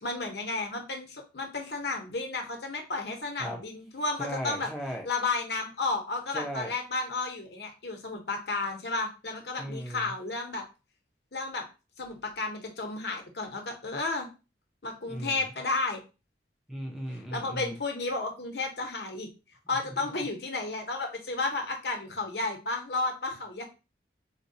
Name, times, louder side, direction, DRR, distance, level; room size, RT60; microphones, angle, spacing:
voice 1, 0.0-4.7 5.0-10.6 11.3-11.6 12.0-14.3 14.8-16.0 17.3-19.3 19.7-23.6, left 3 dB, 65° left, 2 dB, 0.8 m, -32 dB
voice 2, 4.2-5.1 6.3-6.7 9.6-10.1 15.1-15.4 16.7-17.7 19.8-20.2, equal, ahead, 0 dB, 0.6 m, -37 dB
4.1 x 2.2 x 2.7 m, 0.31 s
head